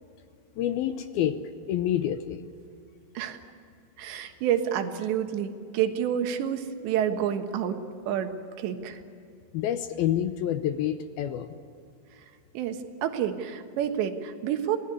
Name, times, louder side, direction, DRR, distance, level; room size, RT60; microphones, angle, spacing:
voice 1, 0.6-1.4 1.7-2.4 9.5-11.6, left 11 dB, 75° left, 10 dB, 2.4 m, -28 dB
voice 2, 4.0-7.8 8.1-9.0 12.6-14.8, right 9 dB, 85° right, 7 dB, 3.6 m, -29 dB
26.0 x 18.0 x 9.8 m, 2.3 s
omnidirectional pair, 4.9 m